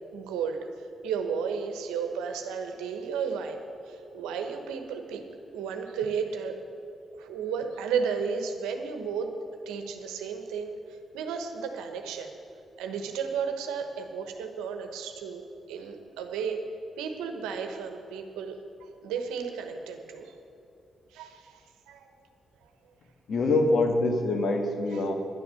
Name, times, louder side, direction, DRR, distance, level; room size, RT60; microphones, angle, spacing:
voice 1, 0.1-0.6 1.0-3.6 3.9-5.2 5.5-6.6 7.2-9.3 9.7-10.7 11.1-12.4 12.8-15.4 15.7-16.6 17.0-20.3 21.1-22.1 24.9-25.1, right 6 dB, 90° right, 5 dB, 1.1 m, -33 dB
voice 2, 23.3-25.1, left 2 dB, 70° left, 4 dB, 1.5 m, -24 dB
11.0 x 9.7 x 7.0 m, 2.7 s
supercardioid pair, 50°, 0 cm